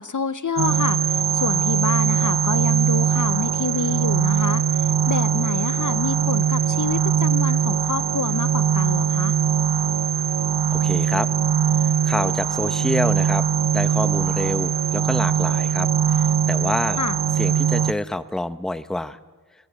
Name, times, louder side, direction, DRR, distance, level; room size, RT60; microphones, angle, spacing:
voice 1, 0.0-9.3 17.0-17.2, left 5 dB, 50° left, 16 dB, 0.6 m, -28 dB
sound 1, 0.6-17.9, right 7 dB, 70° right, 0.7 m, -21 dB
voice 2, 10.7-11.3 11.7-13.5 13.7-17.0 17.3-19.2, left 1 dB, ahead, 14 dB, 0.7 m, -27 dB
22.5 x 19.0 x 7.9 m, 1.4 s
wide cardioid pair, 60°, 40 cm